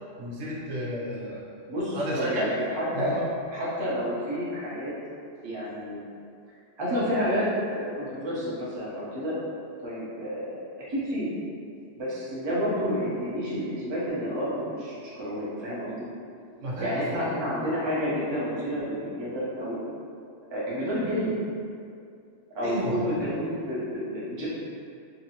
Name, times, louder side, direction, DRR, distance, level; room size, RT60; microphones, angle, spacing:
voice 1, 0.2-2.5 2.9-3.3 16.6-17.2 22.6-23.2, equal, 80° right, -5 dB, 1.0 m, -33 dB
voice 2, 1.7-3.1 3.5-4.9 5.4-6.0 6.8-9.3 9.8-11.3 12.0-16.1 16.8-19.8 20.5-21.4 22.5-24.5, equal, 30° right, -9 dB, 0.6 m, -30 dB
2.7 x 2.6 x 2.8 m, 2.4 s
omnidirectional pair, 1.3 m